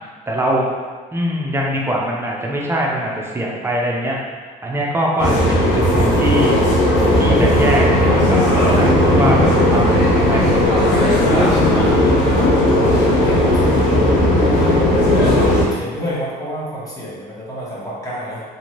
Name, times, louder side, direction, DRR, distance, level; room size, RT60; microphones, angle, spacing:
voice 1, 0.3-0.7 1.1-4.2 4.6-6.6 7.1-7.9 8.3-11.9, right 1 dB, 15° right, -3 dB, 0.5 m, -22 dB
sound 1, 5.2-15.7, left 1 dB, 85° left, 0.8 m, -15 dB
voice 2, 13.1-13.9 15.7-18.4, equal, 20° left, -7 dB, 1.0 m, -29 dB
2.7 x 2.5 x 3.1 m, 1.5 s
cardioid pair, 110°, 17 cm